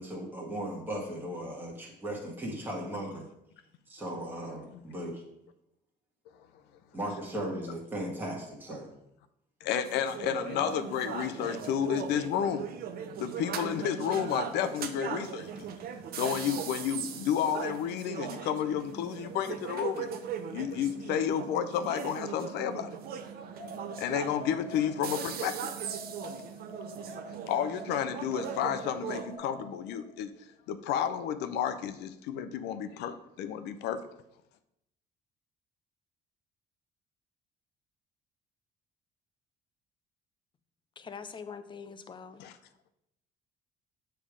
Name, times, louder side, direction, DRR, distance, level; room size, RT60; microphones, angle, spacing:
voice 1, 0.0-3.3 3.9-5.2 6.9-8.9, right 1 dB, 10° right, -3 dB, 1.5 m, -37 dB
voice 2, 9.6-12.7 13.2-15.7 16.1-20.1 20.5-22.9 24.0-25.7 27.5-30.3 30.7-34.0 42.4-42.5, left 9 dB, 85° left, 11 dB, 0.5 m, -31 dB
sound 1, 9.7-29.4, right 8 dB, 65° right, 0.6 m, -39 dB
sound 2, 23.6-25.3 25.8-27.8 28.3-30.2, left 1 dB, 15° left, 1.4 m, -47 dB
voice 3, 41.0-42.4, left 6 dB, 30° left, 10 dB, 0.6 m, -43 dB
7.3 x 3.4 x 4.9 m, 0.82 s
cardioid pair, 110°, 17 cm